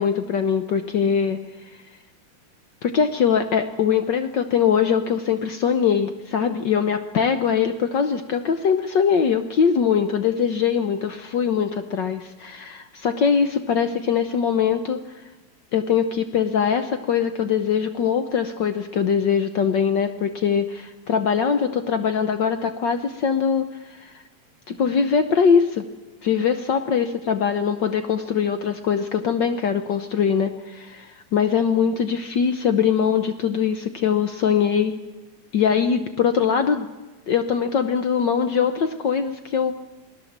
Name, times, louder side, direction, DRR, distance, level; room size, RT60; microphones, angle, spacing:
voice 1, 0.0-1.4 2.8-15.0 15.7-24.1 24.7-25.9 26.2-34.9 35.5-36.9 37.3-39.8, left 7 dB, 85° left, 9 dB, 0.9 m, -22 dB
28.0 x 20.0 x 7.3 m, 1.2 s
omnidirectional pair, 3.3 m